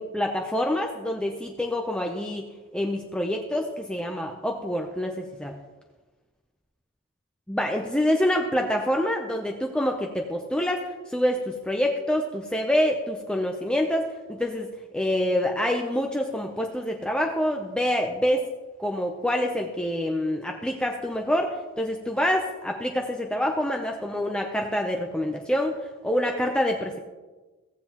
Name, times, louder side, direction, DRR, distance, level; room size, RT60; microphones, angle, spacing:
voice 1, 0.0-2.4 2.7-5.5 7.5-10.8 11.1-18.4 18.8-25.8 26.0-27.0, left 1 dB, 5° left, 1 dB, 0.6 m, -26 dB
16.5 x 7.6 x 3.0 m, 1.2 s
head